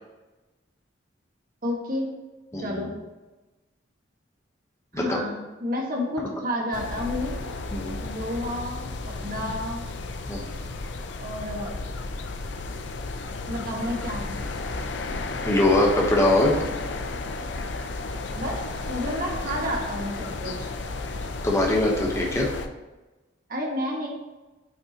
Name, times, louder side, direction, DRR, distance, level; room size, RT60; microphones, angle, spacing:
voice 1, 1.6-2.1 2.6-2.9 4.9-7.4 8.0-9.8 11.2-11.7 13.5-14.4 18.3-18.6 18.9-20.7 23.5-24.1, left 1 dB, 45° right, -1 dB, 1.7 m, -30 dB
voice 2, 2.5-2.9 4.9-5.2 7.7-8.0 10.3-10.5 15.4-16.5 21.4-22.5, left 1 dB, 15° left, -1 dB, 1.0 m, -22 dB
sound 1, 6.7-22.7, left 3 dB, 65° left, 0.6 m, -33 dB
8.7 x 5.5 x 3.0 m, 1.1 s
head